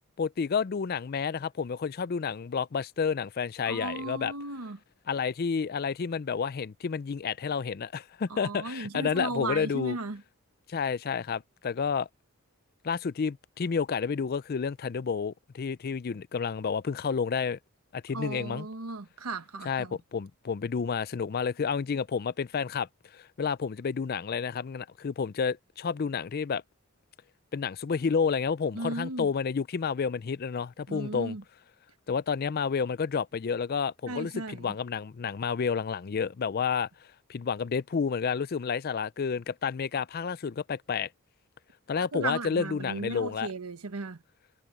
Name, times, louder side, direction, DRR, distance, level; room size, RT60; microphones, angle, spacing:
voice 1, 0.2-4.3 5.1-10.0 10.7-12.1 12.8-17.6 17.9-18.7 19.6-26.6 27.5-31.4 32.1-36.9 37.3-41.1 41.9-43.5, left 6 dB, 45° left, 0.4 m, -30 dB
voice 2, 3.7-4.8 8.3-10.2 18.1-20.0 28.7-29.3 30.9-31.4 34.1-34.8 42.1-44.2, right 3 dB, 80° right, 1.3 m, -36 dB
head